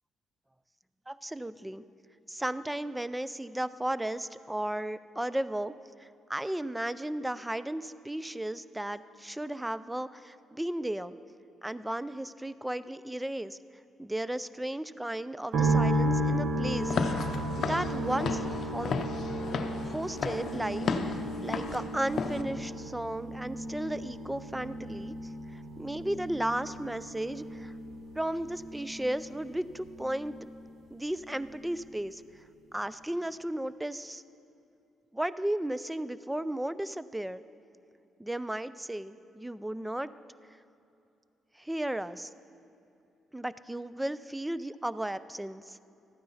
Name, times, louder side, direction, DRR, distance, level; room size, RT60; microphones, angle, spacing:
voice 1, 1.1-1.8 2.3-5.7 6.0-11.1 11.6-13.6 14.0-17.3 17.6-18.9 19.8-25.1 25.5-27.7 28.1-30.5 30.9-32.2 32.7-34.2 35.1-37.4 38.2-40.1 41.6-42.3 43.3-45.8, right 1 dB, 10° right, 16 dB, 0.3 m, -34 dB
sound 1, 15.5-30.8 31.0-31.9, right 1 dB, 75° right, 1.3 m, -34 dB
Walk footsteps / Siren, 16.8-22.4, left 5 dB, 55° left, 0.7 m, -34 dB
13.5 x 9.5 x 4.1 m, 2.7 s
cardioid pair, 90°, 0 cm